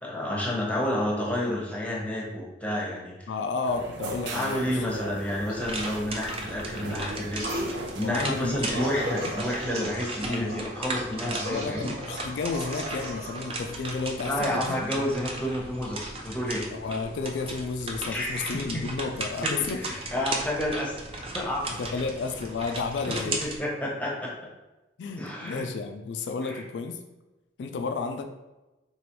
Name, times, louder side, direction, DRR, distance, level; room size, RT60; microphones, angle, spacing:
voice 1, 0.0-3.3 4.3-12.0 14.2-16.7 18.1-18.8 19.4-21.8 23.1-24.3 25.2-25.6 26.4-26.6, left 1 dB, 10° left, -3 dB, 0.8 m, -30 dB
voice 2, 3.3-4.9 8.0-9.3 10.3-10.6 11.5-15.0 16.7-19.8 21.8-23.5 25.0-27.0 27.6-28.3, left 4 dB, 85° left, 5 dB, 0.4 m, -32 dB
sound 1, 3.6-9.6, right 2 dB, 90° right, 0.5 m, -39 dB
sound 2, 5.3-6.0 7.4-7.7 8.7-13.5, right 1 dB, 65° right, 0.8 m, -37 dB
sound 3, 5.6-23.6, right 2 dB, 30° right, 0.5 m, -36 dB
4.7 x 3.0 x 3.0 m, 1.1 s
head